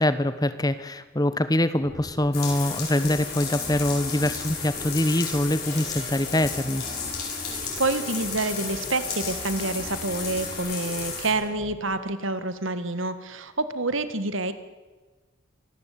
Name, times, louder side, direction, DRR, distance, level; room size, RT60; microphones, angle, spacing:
voice 1, 0.0-6.9, left 1 dB, 20° left, 13 dB, 1.1 m, -24 dB
sound 1, 1.8-11.8, equal, 10° right, 5.9 m, -43 dB
sound 2, 2.3-11.3, left 6 dB, 50° left, 7.5 m, -33 dB
voice 2, 7.4-14.5, right 2 dB, 65° right, 12 dB, 2.0 m, -28 dB
25.5 x 19.0 x 8.7 m, 1.3 s
head